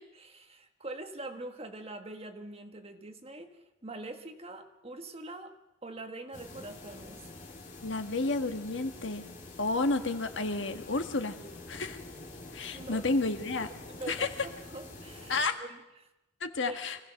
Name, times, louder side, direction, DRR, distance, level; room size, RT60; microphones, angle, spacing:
voice 1, 0.0-5.6 5.8-7.3 12.7-13.0 13.9-16.1 16.7-16.8, right 2 dB, 30° right, 5 dB, 1.6 m, -44 dB
sound 1, 6.3-15.4, left 2 dB, 40° left, 2.8 m, -47 dB
voice 2, 7.8-9.2 9.6-11.4 11.7-12.0 12.5-13.7 14.1-14.3 15.3-15.6 16.4-17.0, left 3 dB, 70° left, 7 dB, 1.5 m, -31 dB
25.5 x 16.5 x 6.5 m, 0.99 s
head